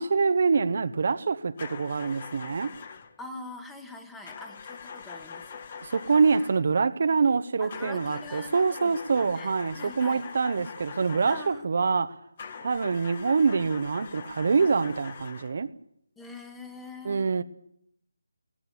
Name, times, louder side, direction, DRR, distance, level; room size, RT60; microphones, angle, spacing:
voice 1, 0.0-2.7 5.8-12.2 12.6-15.7 17.0-17.4, right 5 dB, 50° right, 1.2 m, -25 dB
sound 1, 1.6-3.2 4.2-6.7 7.7-11.7 12.4-15.6, left 6 dB, 35° left, 1.8 m, -43 dB
voice 2, 3.2-5.6 7.6-10.3 11.3-11.7 16.2-17.3, left 2 dB, 5° left, 1.6 m, -44 dB
20.5 x 17.0 x 9.7 m
figure-of-eight pair, 160°, 0 cm